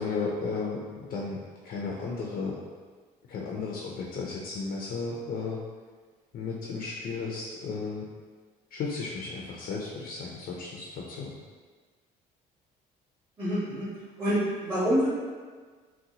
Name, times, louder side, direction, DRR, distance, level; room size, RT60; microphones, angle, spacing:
voice 1, 0.0-1.4 1.6-2.6 3.3-5.6 6.3-8.0 8.7-11.3, left 4 dB, 60° left, -2 dB, 0.5 m, -34 dB
voice 2, 13.4-13.9 14.2-15.1, equal, 20° right, -13 dB, 1.4 m, -26 dB
3.9 x 2.1 x 2.7 m, 1.5 s
cardioid pair, 110°, 17 cm